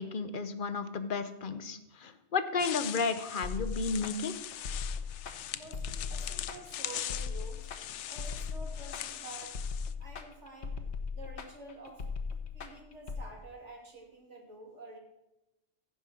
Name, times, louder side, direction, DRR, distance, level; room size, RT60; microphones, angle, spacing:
voice 1, 0.0-4.3, left 4 dB, 50° left, 11 dB, 1.0 m, -33 dB
sound 1, 2.6-9.9, left 11 dB, 85° left, 0.9 m, -41 dB
sound 2, 3.4-13.2, left 5 dB, 70° left, 1.3 m, -38 dB
voice 2, 5.5-7.7 8.1-9.6 10.0-10.8 11.1-12.1 12.5-15.0, right 2 dB, 90° right, 0 dB, 3.0 m, -49 dB
15.5 x 5.3 x 6.3 m, 0.95 s
omnidirectional pair, 1.2 m